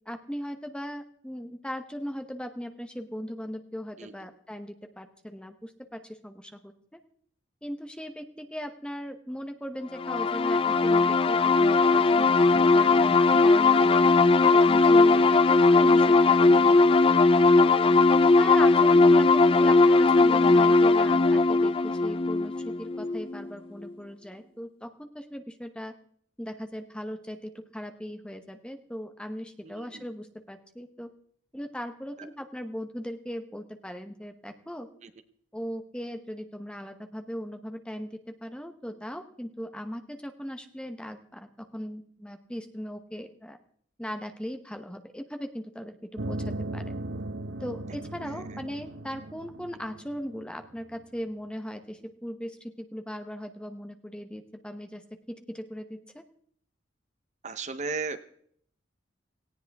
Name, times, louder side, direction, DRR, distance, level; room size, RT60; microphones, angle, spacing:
voice 1, 0.0-7.0 7.6-14.1 14.4-16.9 17.2-17.3 17.8-18.0 18.4-25.9 26.4-31.1 31.5-34.9 35.5-43.6 44.0-47.0 47.6-55.0 55.3-56.2, equal, 5° left, 7 dB, 0.9 m, -38 dB
sound 1, 10.0-23.5, left 3 dB, 30° left, 0.5 m, -19 dB
voice 2, 29.6-30.0 32.2-32.3 35.0-35.1 48.3-48.6 57.4-58.2, right 4 dB, 40° right, 11 dB, 0.9 m, -36 dB
sound 2, 46.2-51.0, right 1 dB, 80° right, 0.9 m, -37 dB
18.0 x 16.5 x 3.5 m, 0.63 s
head